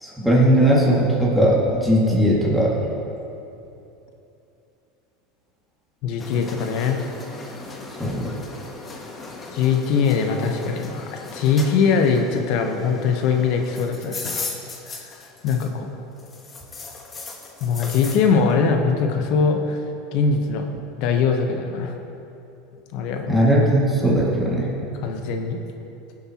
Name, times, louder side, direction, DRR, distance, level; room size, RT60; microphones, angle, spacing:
voice 1, 0.0-2.7 8.0-8.3 23.3-24.7, equal, ahead, -6 dB, 2.3 m, -18 dB
voice 2, 6.0-7.0 9.5-14.5 15.0-15.1 15.4-15.9 17.6-19.8 20.1-20.7 21.0-21.9 22.9-23.3 25.0-25.6, left 5 dB, 60° left, 4 dB, 1.1 m, -21 dB
sound 1, 6.2-15.9 16.2-18.2, left 3 dB, 25° left, 1.4 m, -37 dB
17.0 x 7.9 x 3.1 m, 2.8 s
hypercardioid pair, 95°, 0 cm